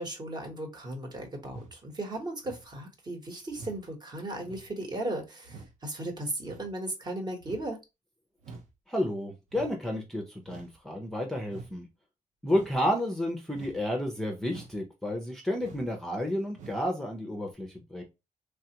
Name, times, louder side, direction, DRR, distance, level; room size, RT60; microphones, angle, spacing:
voice 1, 0.0-7.8, right 1 dB, 30° right, 3 dB, 1.0 m, -36 dB
sound 1, 1.4-1.8 2.4-2.7 3.5-3.8 4.4-4.7 5.4-5.8 6.4-6.7 7.4-7.7 8.4-8.7 9.5-9.7 10.4-10.8 11.5-11.7 12.5-12.8 13.5-13.8 14.5-14.8 15.6-15.9 16.5-16.8 17.5-17.6, right 4 dB, 70° right, 0.6 m, -47 dB
voice 2, 8.9-11.9 12.4-18.0, left 1 dB, 5° left, 1 dB, 0.5 m, -31 dB
3.3 x 2.3 x 2.8 m, 0.24 s
cardioid pair, 115°, 13 cm